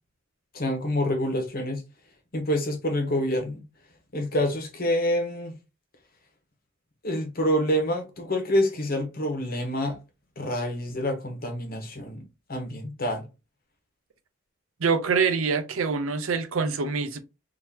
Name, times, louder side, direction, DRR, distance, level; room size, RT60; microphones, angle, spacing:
voice 1, 0.5-1.8 2.3-3.6 4.1-5.6 7.0-10.0 10.4-13.3, left 1 dB, 50° left, 1.1 m, -27 dB
voice 2, 14.8-17.2, right 5 dB, 85° right, 0.6 m, -25 dB
3.8 x 2.8 x 2.8 m
head